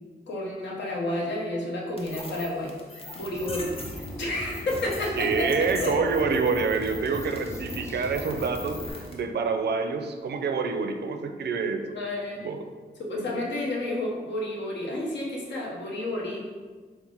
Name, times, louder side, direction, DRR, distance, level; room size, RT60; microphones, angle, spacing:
voice 1, 0.3-2.7 3.1-3.7 4.2-6.0 11.9-12.4 13.0-16.5, left 1 dB, 75° left, -2 dB, 0.9 m, -30 dB
sound 1, 2.0-9.2, left 1 dB, 30° left, 0.8 m, -42 dB
sound 2, 3.3-8.9, left 1 dB, 15° left, 0.4 m, -39 dB
voice 2, 5.2-8.8 9.1-11.9 12.4-12.7 13.2-13.5, right 5 dB, 65° right, 6 dB, 0.4 m, -27 dB
3.9 x 2.2 x 4.3 m, 1.4 s
wide cardioid pair, 100°, 18 cm